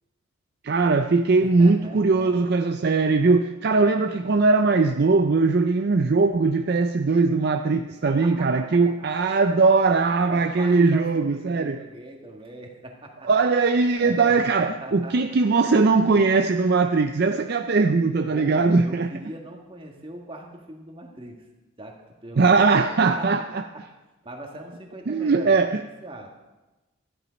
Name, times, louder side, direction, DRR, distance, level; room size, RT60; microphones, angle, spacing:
voice 1, 0.6-11.8 13.2-19.1 22.4-23.6 25.1-25.8, right 4 dB, 50° right, 7 dB, 0.4 m, -20 dB
voice 2, 1.6-2.5 8.0-8.8 10.3-13.3 14.0-14.3 14.8-15.2 18.3-21.4 21.8-22.8 23.2-23.8 24.2-26.3, right 1 dB, 25° right, 1 dB, 1.7 m, -41 dB
14.0 x 11.0 x 5.2 m, 1.1 s
head